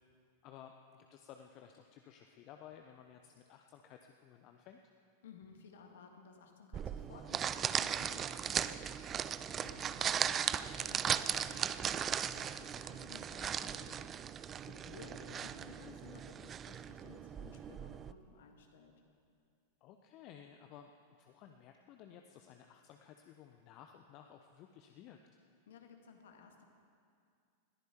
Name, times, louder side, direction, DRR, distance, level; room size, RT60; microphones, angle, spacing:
voice 1, 0.4-4.8 9.6-10.1 15.2-15.5 19.8-25.2, left 9 dB, 40° left, 5 dB, 0.8 m, -56 dB
voice 2, 5.2-9.3 9.6-18.9 25.7-26.6, left 6 dB, 60° left, 3 dB, 2.0 m, -57 dB
sound 1, 6.7-18.1, right 8 dB, 25° right, 0.4 m, -37 dB
21.0 x 14.0 x 4.5 m, 2.3 s
figure-of-eight pair, 90°, 0 cm